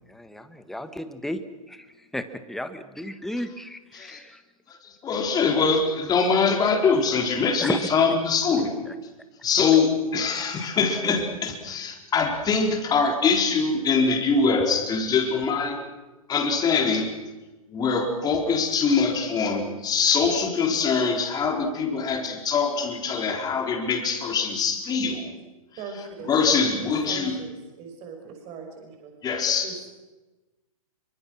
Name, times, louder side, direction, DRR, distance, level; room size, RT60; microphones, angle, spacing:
voice 1, 0.1-1.4 1.7-4.4 7.6-7.8 8.9-9.0, left 1 dB, ahead, 10 dB, 1.4 m, -34 dB
voice 2, 4.7-8.7 9.4-15.8 16.3-17.2 17.7-25.3 26.3-27.4 29.2-29.7, left 5 dB, 20° left, 2 dB, 4.2 m, -23 dB
voice 3, 25.8-26.3 26.8-29.1 29.6-29.7, right 5 dB, 35° right, 4 dB, 5.5 m, -40 dB
25.5 x 24.5 x 6.3 m, 1.1 s
figure-of-eight pair, 115°, 18 cm